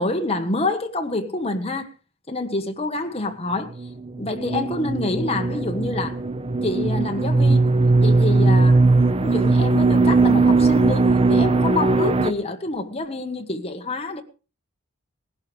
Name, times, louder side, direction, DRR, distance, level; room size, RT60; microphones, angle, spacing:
voice 1, 0.0-1.9 2.3-3.7 4.2-6.2 6.6-7.7 8.0-8.8 9.2-14.2, left 2 dB, 30° left, 1.4 m, -27 dB
sound 1, 3.8-12.3, right 3 dB, 25° right, 0.6 m, -19 dB
19.5 x 11.5 x 3.4 m
head